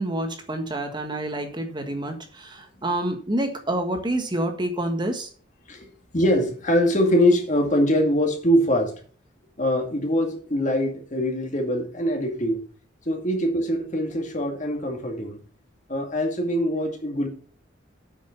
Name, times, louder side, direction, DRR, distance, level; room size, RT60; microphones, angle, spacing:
voice 1, 0.0-5.3, right 1 dB, 25° right, 1.5 m, -28 dB
voice 2, 6.1-9.0 9.6-12.6 13.1-15.4 15.9-17.3, equal, 40° left, 2.2 m, -23 dB
8.3 x 6.2 x 6.8 m
head